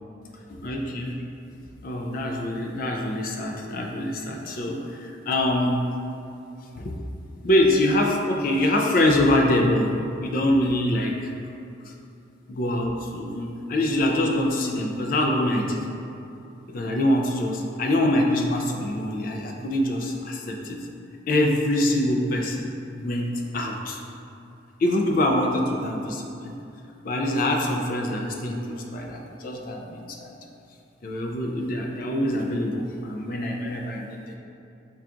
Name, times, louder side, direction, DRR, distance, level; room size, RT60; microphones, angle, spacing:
voice 1, 0.5-1.1 1.8-5.8 6.8-7.0 7.4-9.9 10.2-11.3 11.8-11.9 12.5-15.8 16.7-20.8 21.3-24.0 24.8-26.5 27.0-30.4 31.0-34.4, left 1 dB, 45° left, 1 dB, 0.3 m, -24 dB
5.6 x 2.3 x 2.5 m, 2.7 s
head